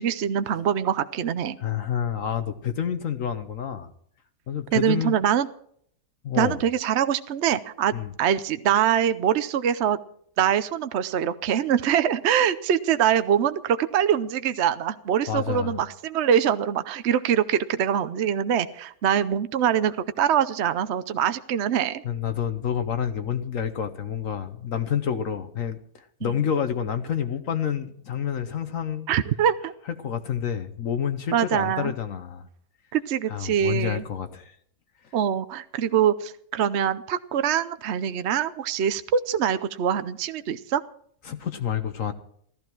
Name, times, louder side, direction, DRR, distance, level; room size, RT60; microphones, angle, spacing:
voice 1, 0.0-1.6 4.7-5.5 6.3-10.0 10.4-22.0 26.2-26.3 29.1-29.7 31.3-31.9 32.9-34.0 35.1-40.8, right 9 dB, 55° right, 12 dB, 0.8 m, -24 dB
voice 2, 1.6-3.9 4.5-5.1 6.2-6.6 7.9-8.1 15.3-15.8 22.0-29.1 30.0-32.5 33.3-34.6 41.2-42.1, left 8 dB, 60° left, 9 dB, 1.2 m, -28 dB
15.5 x 14.0 x 4.5 m, 0.64 s
omnidirectional pair, 1.7 m